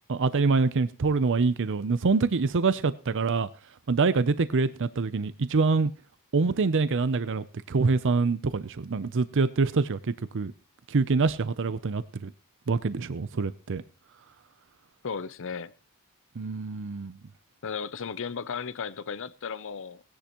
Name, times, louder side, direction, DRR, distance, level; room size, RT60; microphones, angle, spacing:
voice 1, 0.1-3.5 3.9-5.9 6.3-10.5 10.9-12.3 12.7-13.8 16.4-17.1, right 4 dB, 60° right, 0.6 m, -25 dB
voice 2, 15.0-15.7 17.6-20.0, left 6 dB, 60° left, 0.7 m, -35 dB
18.5 x 10.0 x 3.0 m
head